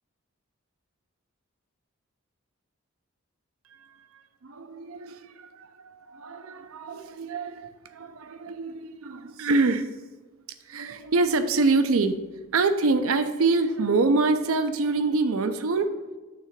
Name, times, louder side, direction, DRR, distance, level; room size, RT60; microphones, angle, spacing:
voice 1, 4.4-9.9 10.7-12.2 12.5-16.0, right 3 dB, 75° right, 10 dB, 0.6 m, -25 dB
6.2 x 3.7 x 5.7 m, 1.2 s
head